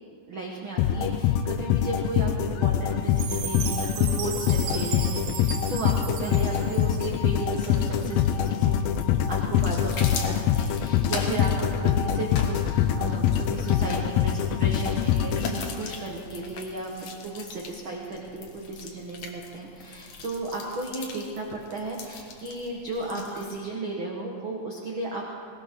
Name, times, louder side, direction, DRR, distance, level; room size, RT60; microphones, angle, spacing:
voice 1, 0.3-9.0 9.3-25.3, right 2 dB, 55° right, -1 dB, 1.4 m, -34 dB
sound 1, 0.8-16.0, left 9 dB, 80° left, 2.4 m, -24 dB
Chime, 3.2-7.4, right 8 dB, 75° right, 2.7 m, -36 dB
sound 2, 7.5-23.6, left 4 dB, 60° left, 1.9 m, -40 dB
18.5 x 18.5 x 3.8 m, 2.4 s
omnidirectional pair, 4.3 m